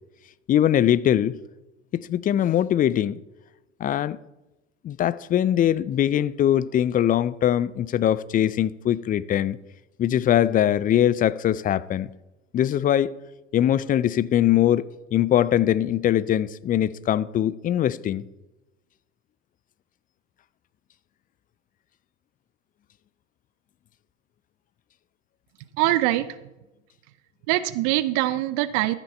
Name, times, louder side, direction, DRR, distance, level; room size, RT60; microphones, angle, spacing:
voice 1, 0.5-1.4 1.9-3.2 3.8-4.2 4.8-9.6 10.0-12.1 12.5-13.1 13.5-18.2, left 11 dB, 25° left, 0.4 m, -22 dB
voice 2, 25.8-26.3 27.5-29.0, right 16 dB, 60° right, 0.6 m, -23 dB
13.5 x 6.0 x 4.4 m
hypercardioid pair, 75°, 34 cm